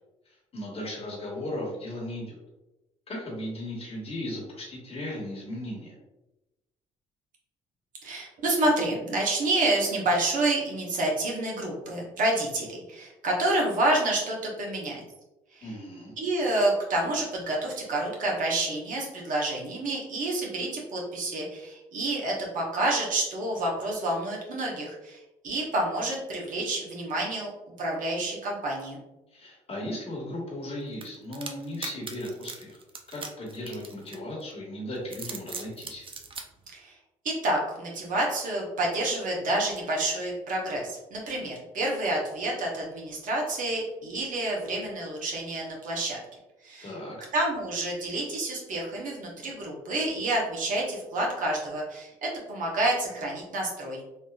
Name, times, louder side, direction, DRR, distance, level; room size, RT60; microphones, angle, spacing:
voice 1, 0.3-2.4 3.1-5.9 15.6-16.1 29.3-32.8 33.1-36.0 46.8-47.2, left 1 dB, 40° left, -2 dB, 1.3 m, -36 dB
voice 2, 8.0-15.0 15.5-15.7 16.2-27.5 27.8-29.0 36.7-37.0 37.2-46.2 46.6-46.9 47.3-54.0, right 2 dB, 55° right, -2 dB, 1.0 m, -28 dB
sound 1, 31.0-34.5 35.0-36.4, right 5 dB, 35° right, 0.5 m, -39 dB
3.4 x 2.6 x 2.3 m, 0.98 s
hypercardioid pair, 55°, 16 cm